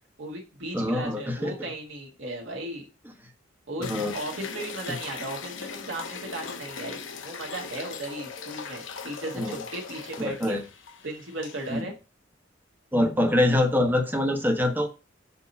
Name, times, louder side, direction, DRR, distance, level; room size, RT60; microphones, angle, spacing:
voice 1, 0.2-2.9 3.7-10.6 11.0-11.9, right 2 dB, 90° right, -2 dB, 1.9 m, -36 dB
voice 2, 0.7-1.5 3.8-4.1 9.3-9.6 10.2-10.6 11.7-11.9 12.9-14.9, left 1 dB, 10° right, 3 dB, 1.1 m, -24 dB
sound 1, 3.8-11.8, left 5 dB, 90° left, 0.8 m, -39 dB
7.0 x 2.9 x 5.4 m, 0.31 s
head